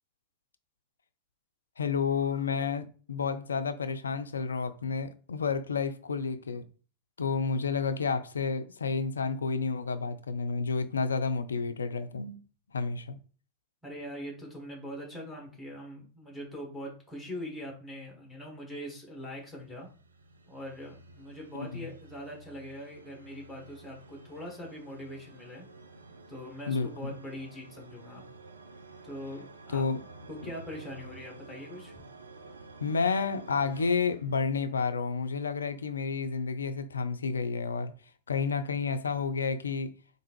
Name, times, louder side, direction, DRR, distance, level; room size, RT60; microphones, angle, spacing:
voice 1, 1.8-6.6 7.2-12.4 12.7-13.2 21.5-21.9 26.7-27.2 29.7-30.0 32.8-37.9 38.3-39.9, left 5 dB, 70° left, 0.3 m, -30 dB
voice 2, 13.8-19.9 20.5-25.7 26.3-28.2 29.0-29.8 30.3-32.0, equal, ahead, 1.4 m, -42 dB
sound 1, 19.0-35.2, right 3 dB, 75° right, 0.4 m, -51 dB
3.5 x 2.5 x 3.0 m
figure-of-eight pair, 90°, 0 cm